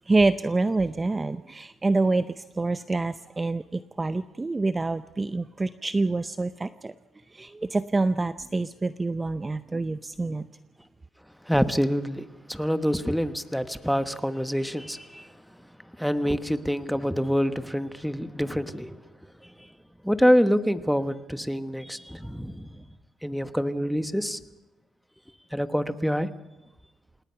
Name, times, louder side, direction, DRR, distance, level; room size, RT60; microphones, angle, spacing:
voice 1, 0.1-6.9 7.3-10.5, right 3 dB, 20° right, 0.6 m, -26 dB
voice 2, 11.5-15.3 16.0-19.0 20.0-22.7 23.2-24.4 25.5-26.3, equal, ahead, 1.2 m, -26 dB
27.5 x 19.0 x 5.8 m
cardioid pair, 90°, 0 cm